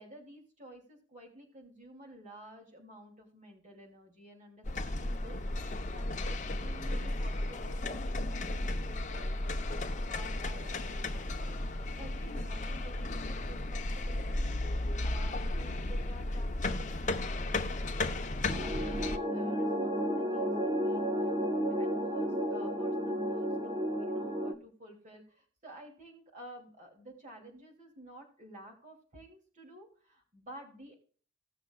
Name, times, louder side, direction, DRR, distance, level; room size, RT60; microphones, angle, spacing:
voice 1, 0.0-30.9, right 1 dB, 40° right, 1 dB, 2.8 m, -52 dB
sound 1, 4.6-19.2, left 2 dB, 40° left, 0.9 m, -34 dB
sound 2, 18.5-24.5, equal, 20° right, 1.2 m, -32 dB
16.5 x 6.7 x 2.4 m, 0.43 s
head